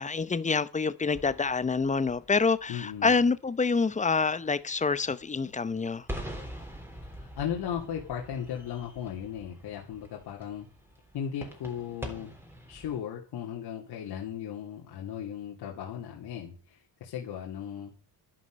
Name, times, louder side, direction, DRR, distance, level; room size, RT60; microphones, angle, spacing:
voice 1, 0.0-6.1, left 4 dB, 20° left, 0.7 m, -27 dB
sound 1, 1.1-13.0, equal, 5° right, 3.6 m, -45 dB
voice 2, 2.7-3.2 7.1-10.7 11.1-12.3 12.7-17.9, left 9 dB, 75° left, 2.8 m, -36 dB
11.5 x 11.0 x 5.2 m
cardioid pair, 120°, 40 cm